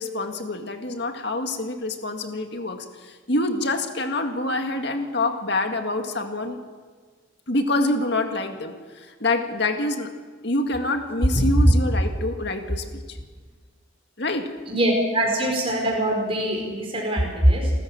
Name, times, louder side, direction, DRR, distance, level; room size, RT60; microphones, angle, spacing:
voice 1, 0.0-6.6 7.5-10.1 10.4-13.2 14.2-14.4, left 2 dB, 55° left, 5 dB, 2.0 m, -26 dB
voice 2, 11.3-11.7 14.6-17.7, right 1 dB, 30° right, 0 dB, 4.9 m, -21 dB
26.5 x 13.5 x 7.5 m, 1.5 s
head